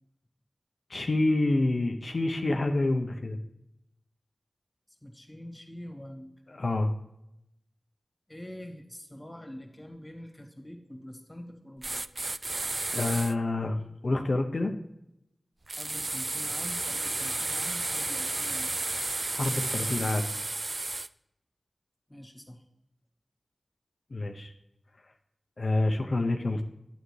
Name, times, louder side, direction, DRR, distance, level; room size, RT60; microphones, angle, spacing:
voice 1, 0.9-3.4 6.5-6.9 12.9-13.8 14.0-14.7 19.3-20.3 24.1-24.5 25.6-26.6, left 2 dB, 65° left, 4 dB, 0.7 m, -27 dB
voice 2, 5.0-6.3 8.3-12.0 15.8-18.8 22.1-22.6, equal, 20° left, 3 dB, 1.9 m, -45 dB
sound 1, 11.8-13.3 15.7-21.1, right 2 dB, 50° right, 0.3 m, -32 dB
9.0 x 8.1 x 3.2 m, 0.82 s
cardioid pair, 40°, 0 cm